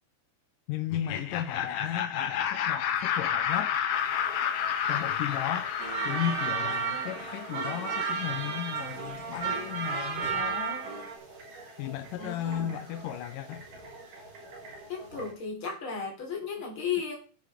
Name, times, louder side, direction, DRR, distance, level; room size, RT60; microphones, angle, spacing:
voice 1, 0.7-3.8 4.9-5.7 6.1-10.8 11.8-13.6, left 11 dB, 85° left, 2.3 m, -35 dB
Laughter, 0.9-7.7, left 8 dB, 60° left, 1.8 m, -31 dB
sound 1, 3.9-15.3, right 2 dB, 75° right, 5.8 m, -47 dB
sound 2, 5.8-11.2, right 5 dB, 55° right, 4.0 m, -33 dB
voice 2, 12.2-12.7 14.9-17.2, left 6 dB, 40° left, 4.3 m, -34 dB
10.0 x 10.0 x 5.1 m
omnidirectional pair, 3.7 m